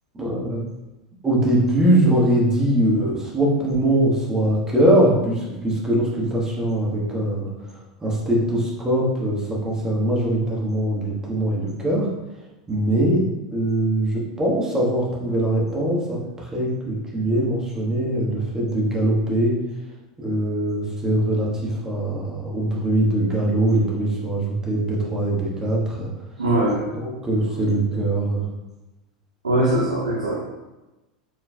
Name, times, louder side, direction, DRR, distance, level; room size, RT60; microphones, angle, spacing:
voice 1, 0.1-0.6 1.2-7.5 8.0-12.1 12.7-19.5 20.2-26.1 27.0-28.4, right 1 dB, 15° right, -4 dB, 1.3 m, -22 dB
voice 2, 26.4-26.9 29.4-30.6, right 1 dB, 80° right, -4 dB, 0.7 m, -21 dB
4.9 x 3.8 x 2.3 m, 1.1 s
figure-of-eight pair, 85°, 4 cm